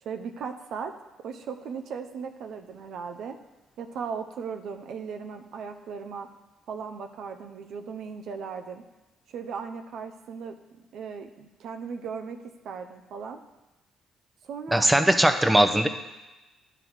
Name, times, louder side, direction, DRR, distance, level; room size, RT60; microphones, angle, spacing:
voice 1, 0.0-3.4 3.8-6.3 6.7-8.8 9.3-13.4 14.4-14.9, right 6 dB, 70° right, 6 dB, 0.6 m, -37 dB
voice 2, 14.7-15.9, right 1 dB, 10° right, 7 dB, 0.8 m, -20 dB
10.0 x 3.9 x 6.2 m, 1.1 s
hypercardioid pair, 55°, 0 cm